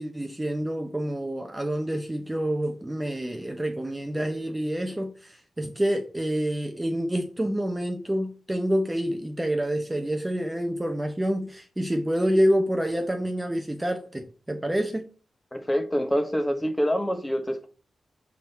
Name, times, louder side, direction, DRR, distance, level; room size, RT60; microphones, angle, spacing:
voice 1, 0.0-15.1, equal, 15° right, 0.7 m, -27 dB
voice 2, 15.5-17.7, equal, 10° left, 1.3 m, -26 dB
7.6 x 3.6 x 4.3 m
cardioid pair, 85°, 0 cm